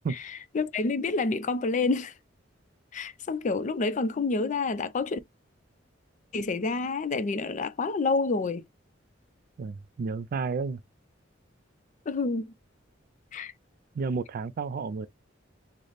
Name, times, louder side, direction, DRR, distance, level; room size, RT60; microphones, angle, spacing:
voice 1, 0.5-2.1 2.9-5.2 6.3-8.6 12.1-12.5 13.3-13.5, left 3 dB, 40° left, 0.4 m, -28 dB
voice 2, 9.6-10.8 13.9-15.1, right 4 dB, 50° right, 0.3 m, -31 dB
4.0 x 2.0 x 3.2 m
head